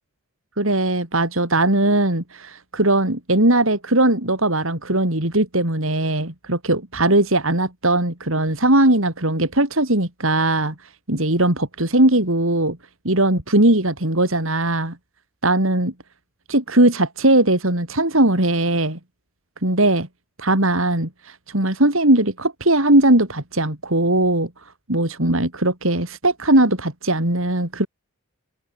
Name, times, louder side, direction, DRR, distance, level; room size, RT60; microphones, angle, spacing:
voice 1, 0.6-10.7 11.1-12.8 13.0-15.0 15.4-15.9 16.5-19.0 19.6-20.1 20.4-24.5 24.9-27.9, right 1 dB, 65° right, 4.2 m, -19 dB
head